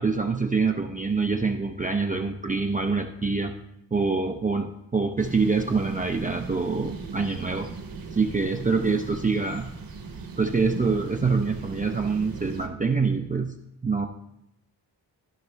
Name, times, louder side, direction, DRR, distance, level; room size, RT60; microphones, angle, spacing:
voice 1, 0.0-3.5 3.9-7.7 8.1-9.7 10.4-13.6 13.8-14.1, right 4 dB, 20° right, 4 dB, 0.4 m, -25 dB
sound 1, 5.2-12.7, right 5 dB, 50° right, 1.2 m, -38 dB
13.5 x 5.4 x 3.3 m, 0.81 s
wide cardioid pair, 130°, 44 cm